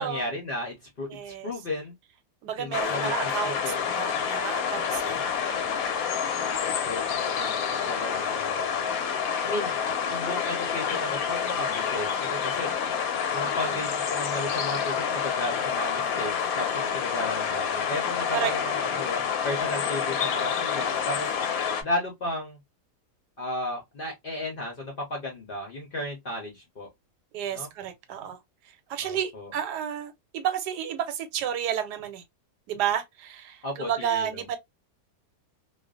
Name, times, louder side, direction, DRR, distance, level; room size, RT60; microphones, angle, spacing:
voice 1, 0.0-1.9 2.6-3.8 5.0-5.2 6.9-8.8 9.4-9.8 10.1-12.8 13.3-21.3 21.6-22.6 23.4-26.9 27.5-27.7 29.0-29.5 33.6-34.6, left 1 dB, 50° left, 0.6 m, -34 dB
voice 2, 1.1-1.5 2.4-5.6 13.4-13.8 18.3-18.5 27.3-28.4 28.9-32.2 32.7-34.6, right 9 dB, 90° right, 1.2 m, -31 dB
sound 1, 2.7-21.8, left 7 dB, 70° left, 0.9 m, -28 dB
2.4 x 2.4 x 2.3 m
omnidirectional pair, 1.7 m